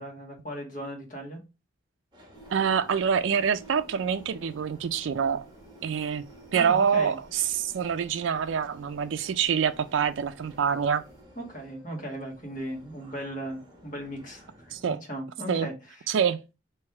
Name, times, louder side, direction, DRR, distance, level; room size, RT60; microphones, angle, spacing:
voice 1, 0.0-1.4 6.5-7.1 11.4-15.7, equal, 40° left, 1.5 m, -37 dB
Subway metro underground, 2.1-14.9, left 1 dB, 25° right, 1.2 m, -53 dB
sound 1, 2.3-11.2, right 3 dB, 20° left, 0.8 m, -54 dB
voice 2, 2.5-5.4 5.8-6.3 6.5-11.0 14.7-15.0 15.5-15.7 16.1-16.4, right 7 dB, 75° right, 0.4 m, -26 dB
3.4 x 3.1 x 4.6 m
head